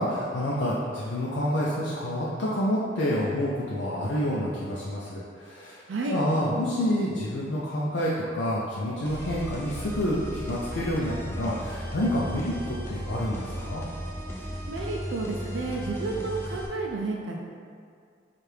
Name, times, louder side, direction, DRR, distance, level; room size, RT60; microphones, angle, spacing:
voice 1, 0.0-13.8, equal, 90° left, -6 dB, 0.5 m, -28 dB
voice 2, 5.9-6.2 14.7-17.4, right 3 dB, 85° right, -1 dB, 0.4 m, -31 dB
sound 1, 9.0-16.7, equal, 15° left, 0.4 m, -36 dB
3.3 x 2.4 x 4.4 m, 2.2 s
head